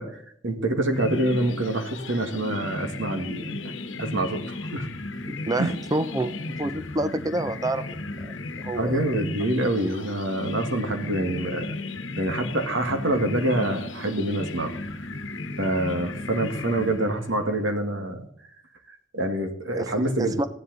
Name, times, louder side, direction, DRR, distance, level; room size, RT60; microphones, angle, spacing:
voice 1, 0.0-3.7 4.0-4.9 5.6-5.8 8.8-11.7 12.2-14.7 15.6-18.2 19.1-20.4, right 1 dB, 75° right, 5 dB, 2.0 m, -26 dB
sound 1, 0.9-17.5, left 2 dB, 75° left, 1.2 m, -35 dB
voice 2, 5.5-9.0 19.7-19.9 20.2-20.5, right 1 dB, 20° right, 12 dB, 0.6 m, -28 dB
15.0 x 11.0 x 4.1 m, 0.65 s
head